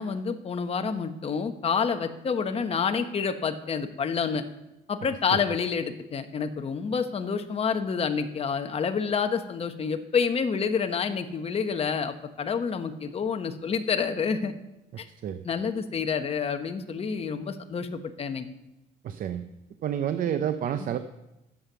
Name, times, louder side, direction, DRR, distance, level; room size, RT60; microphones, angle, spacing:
voice 1, 0.0-4.4 4.9-14.5 15.0-15.1 15.4-18.5, left 6 dB, 35° left, 7 dB, 1.1 m, -28 dB
voice 2, 19.0-19.4 19.8-21.0, right 9 dB, 55° right, 10 dB, 0.7 m, -29 dB
11.0 x 7.8 x 6.9 m, 0.95 s
cardioid pair, 110°, 17 cm